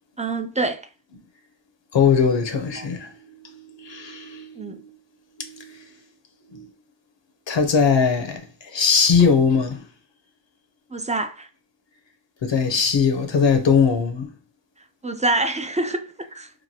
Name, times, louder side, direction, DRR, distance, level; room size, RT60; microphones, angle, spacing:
voice 1, 0.2-0.8 2.8-2.9 4.6-4.8 10.9-11.5 15.0-16.5, right 2 dB, 20° right, 0.3 m, -26 dB
voice 2, 1.9-3.1 3.4-4.8 5.4-5.9 6.5-6.7 7.5-9.8 12.4-14.3, left 6 dB, 75° left, 0.6 m, -20 dB
2.9 x 2.4 x 2.6 m
wide cardioid pair, 55°, 44 cm